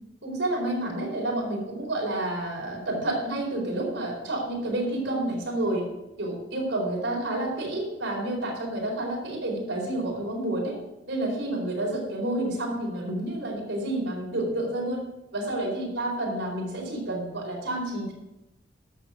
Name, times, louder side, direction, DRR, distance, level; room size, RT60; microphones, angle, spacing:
voice 1, 0.2-5.8 6.2-10.8 11.1-15.0 15.3-18.1, right 1 dB, 80° right, -2 dB, 4.5 m, -29 dB
11.5 x 6.7 x 6.5 m, 0.95 s
head